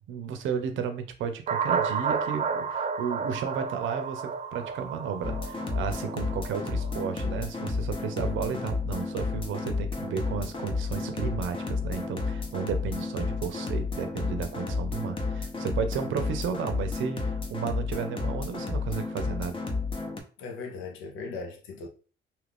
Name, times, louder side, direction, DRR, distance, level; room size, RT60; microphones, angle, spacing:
voice 1, 0.1-19.6, right 7 dB, 80° right, 0.6 m, -33 dB
sound 1, 1.5-7.1, right 6 dB, 35° right, 0.4 m, -31 dB
sound 2, 5.2-20.2, left 3 dB, 25° left, 0.7 m, -32 dB
voice 2, 8.2-8.6 20.4-21.9, left 4 dB, 85° left, 0.6 m, -39 dB
2.8 x 2.5 x 3.4 m
cardioid pair, 90°, 20 cm